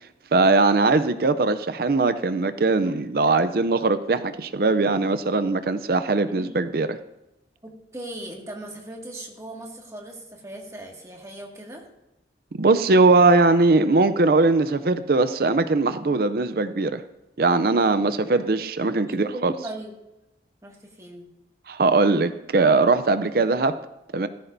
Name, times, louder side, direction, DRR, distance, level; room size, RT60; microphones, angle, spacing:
voice 1, 0.3-7.0 12.6-17.0 17.4-19.5 21.7-23.7 24.1-24.3, right 3 dB, 55° right, 12 dB, 0.5 m, -20 dB
voice 2, 7.6-11.8 18.3-18.4 19.0-20.0 20.6-21.3, right 1 dB, 20° right, -1 dB, 2.1 m, -39 dB
17.5 x 14.5 x 2.7 m, 0.91 s
head